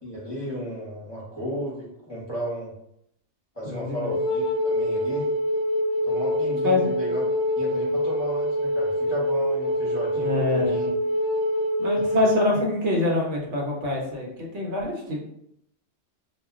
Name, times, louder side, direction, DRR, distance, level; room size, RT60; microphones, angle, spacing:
voice 1, 0.0-2.7 3.5-5.3 6.0-7.2 7.6-10.9 12.0-12.1, equal, 25° left, -7 dB, 0.8 m, -34 dB
voice 2, 3.6-4.1 6.6-6.8 10.2-10.8 11.8-15.2, left 2 dB, 70° right, -1 dB, 1.0 m, -25 dB
Wind instrument woodwind instrument, 4.0-12.5, equal, ahead, 0.8 m, -25 dB
2.4 x 2.1 x 3.5 m, 0.76 s
omnidirectional pair, 1.2 m